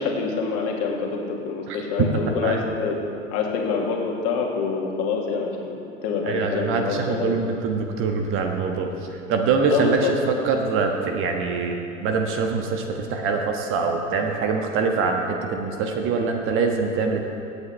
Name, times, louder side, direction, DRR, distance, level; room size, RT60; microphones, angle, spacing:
voice 1, 0.0-3.0 3.3-7.4 9.7-10.1, left 5 dB, 40° left, 0 dB, 2.1 m, -26 dB
voice 2, 6.3-8.9 9.3-10.0 10.3-17.2, right 4 dB, 35° right, 3 dB, 1.4 m, -24 dB
25.5 x 8.5 x 3.3 m, 2.7 s
figure-of-eight pair, 90°, 37 cm